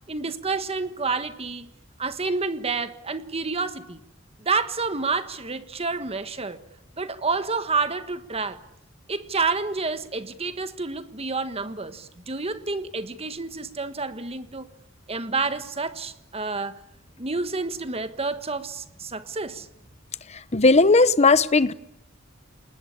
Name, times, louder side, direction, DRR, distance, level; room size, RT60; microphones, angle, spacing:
voice 1, 0.1-1.7 2.0-4.0 4.4-6.6 7.0-8.6 9.1-14.7 15.1-16.8 17.2-19.7, right 4 dB, 30° right, 1.5 m, -29 dB
voice 2, 20.3-21.7, left 3 dB, 35° left, 0.9 m, -17 dB
28.5 x 20.5 x 8.5 m
head